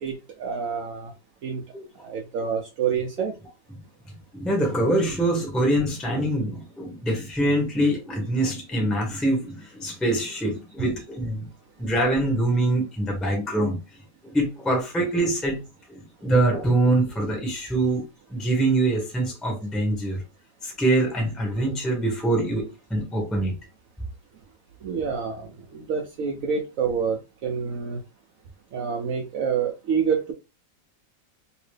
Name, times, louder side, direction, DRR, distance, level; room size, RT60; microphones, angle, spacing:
voice 1, 0.0-1.1 1.4-1.6 2.0-3.3 24.8-25.5 25.7-28.0 28.7-30.3, right 6 dB, 70° right, 0.8 m, -27 dB
voice 2, 4.1-11.5 11.8-13.8 14.2-15.6 15.9-18.0 18.3-20.2 20.6-23.5, right 1 dB, ahead, 0.7 m, -24 dB
3.0 x 2.9 x 3.2 m
omnidirectional pair, 2.0 m